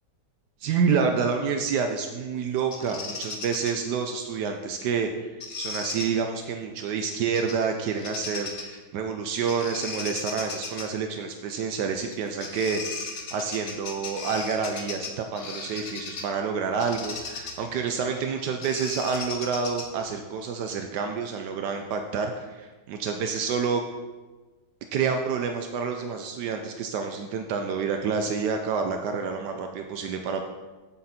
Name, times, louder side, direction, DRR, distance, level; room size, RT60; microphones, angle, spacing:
voice 1, 0.6-12.8 13.1-23.8 24.9-30.4, right 6 dB, 80° right, 5 dB, 1.3 m, -28 dB
Bird vocalization bird call bird song, 2.7-3.7 5.4-6.1 7.3-7.7 8.0-8.8 9.5-10.9 12.1-12.2 12.4-16.3 16.8-20.1, left 4 dB, 50° left, 1.2 m, -36 dB
7.8 x 7.7 x 4.2 m, 1.3 s
omnidirectional pair, 1.8 m